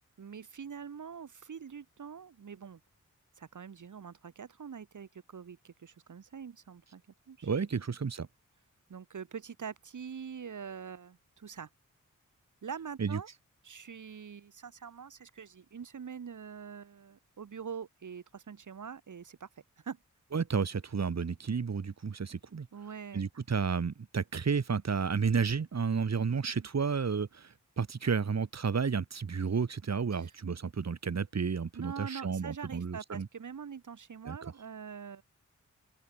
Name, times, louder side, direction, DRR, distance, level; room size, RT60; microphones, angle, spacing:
voice 1, 0.2-2.8 3.4-7.0 7.3-7.5 7.7-7.8 8.9-11.7 12.6-13.3 13.6-19.5 19.8-20.0 22.7-23.3 30.1-30.3 31.7-35.2, right 6 dB, 75° right, 2.1 m, -44 dB
voice 2, 7.4-8.3 13.0-13.2 20.3-22.7 23.1-33.3 34.3-34.4, right 5 dB, 55° right, 2.3 m, -31 dB
open air
wide cardioid pair, 85°, 31 cm